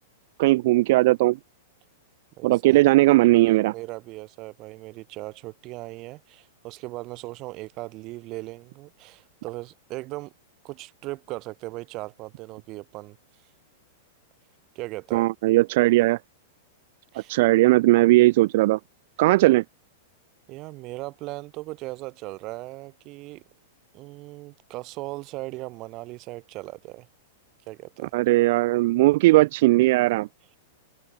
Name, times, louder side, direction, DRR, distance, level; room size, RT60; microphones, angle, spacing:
voice 1, 0.4-1.4 2.4-3.7 15.1-16.2 17.3-18.8 19.2-19.6 28.1-30.3, right 19 dB, 50° right, 1.5 m, -18 dB
voice 2, 2.4-2.8 3.7-10.3 10.6-13.2 14.7-15.3 17.1-17.4 20.5-23.4 23.9-27.1 27.7-28.1, right 20 dB, 30° right, 6.3 m, -38 dB
supercardioid pair, 165°, 0 cm